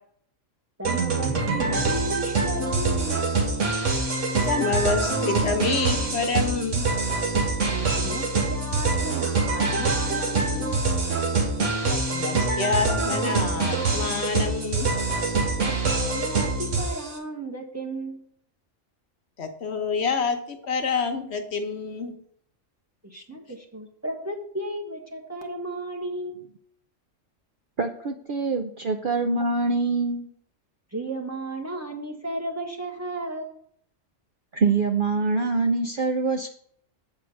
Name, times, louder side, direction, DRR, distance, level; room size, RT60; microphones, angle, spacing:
voice 1, 0.8-3.3 7.7-10.9 15.6-18.2 23.0-26.4 30.9-33.5, right 2 dB, 15° right, 1 dB, 1.4 m, -34 dB
sound 1, 0.8-17.1, right 3 dB, 75° right, 1.9 m, -25 dB
voice 2, 4.3-6.9 11.8-14.9 19.4-22.1 23.1-23.2, left 5 dB, 60° left, 6 dB, 1.2 m, -28 dB
voice 3, 27.8-30.3 34.5-36.5, right 4 dB, 55° right, 5 dB, 0.7 m, -24 dB
8.2 x 4.7 x 6.4 m, 0.63 s
omnidirectional pair, 1.3 m